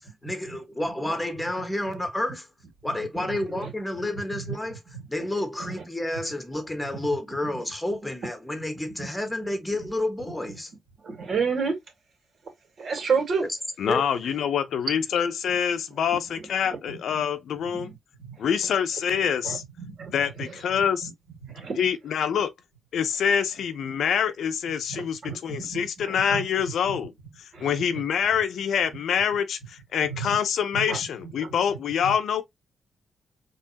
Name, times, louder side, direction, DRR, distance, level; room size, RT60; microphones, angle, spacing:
voice 1, 0.2-2.5 2.8-4.8 5.1-10.7 13.4-13.6 13.9-14.0, left 1 dB, 10° left, 1.3 m, -30 dB
voice 2, 11.0-11.8 12.8-13.4 16.4-16.5 16.9-17.0 17.7-17.9 18.2-18.3 19.4-20.1 21.0-21.1 21.5-21.8 24.9-26.4 27.5-27.7 30.1-30.3 30.7-31.0 32.0-32.1, right 5 dB, 60° right, 2.4 m, -30 dB
voice 3, 13.8-17.9 18.4-19.6 20.1-21.1 21.8-22.5 22.9-27.1 27.6-32.4, left 8 dB, 75° left, 0.6 m, -26 dB
4.5 x 3.2 x 2.9 m
cardioid pair, 100°, 0 cm